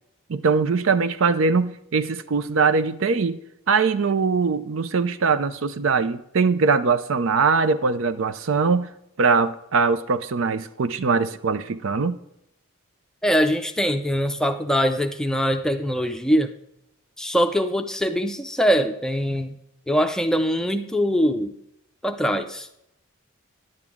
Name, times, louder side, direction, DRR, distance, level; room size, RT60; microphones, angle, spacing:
voice 1, 0.3-3.4 3.7-8.9 9.2-12.2, right 4 dB, 65° right, 13 dB, 0.5 m, -21 dB
voice 2, 13.2-16.5 17.2-19.5 19.9-21.5 22.0-22.7, equal, 5° left, 6 dB, 0.5 m, -22 dB
11.0 x 8.8 x 3.6 m, 0.80 s
head